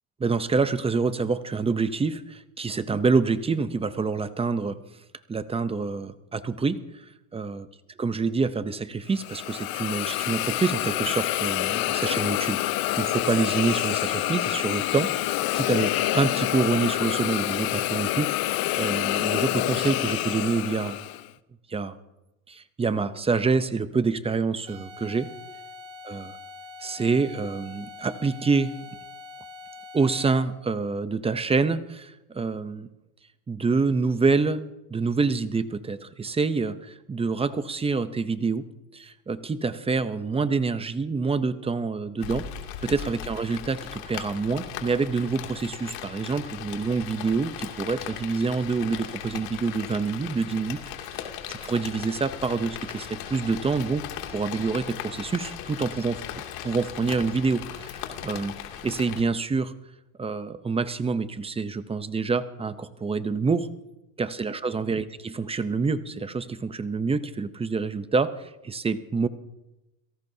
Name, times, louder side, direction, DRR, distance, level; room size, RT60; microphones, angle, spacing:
voice 1, 0.2-4.8 5.3-7.0 7.3-7.7 8.0-21.0 21.7-21.9 22.5-25.3 26.1-26.3 26.8-28.7 29.9-32.9 33.5-38.6 38.9-42.5 42.8-50.8 51.5-54.0 54.3-56.2 56.6-58.5 58.8-59.7 60.2-63.7 64.2-69.3, right 4 dB, 10° right, 12 dB, 0.6 m, -27 dB
Hiss, 9.1-21.3, left 16 dB, 50° left, 0.8 m, -27 dB
sound 1, 24.7-30.6, left 4 dB, 85° right, 4.5 m, -44 dB
Rain, 42.2-59.2, left 10 dB, 70° left, 2.7 m, -38 dB
29.0 x 17.5 x 2.8 m, 0.96 s
supercardioid pair, 125°, 47 cm